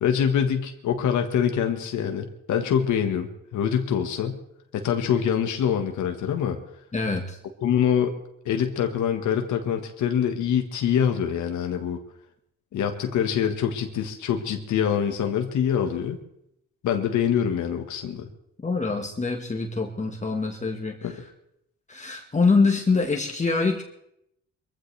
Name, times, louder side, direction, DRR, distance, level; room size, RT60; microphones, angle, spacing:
voice 1, 0.0-4.4 4.7-6.6 7.6-8.1 8.4-12.0 12.7-16.2 16.8-18.3 21.0-21.2, left 8 dB, 75° left, 5 dB, 1.4 m, -25 dB
voice 2, 6.9-7.4 18.6-21.0 21.9-23.8, left 4 dB, 25° left, 3 dB, 1.5 m, -24 dB
22.0 x 15.0 x 3.3 m, 0.78 s
cardioid pair, 90°, 30 cm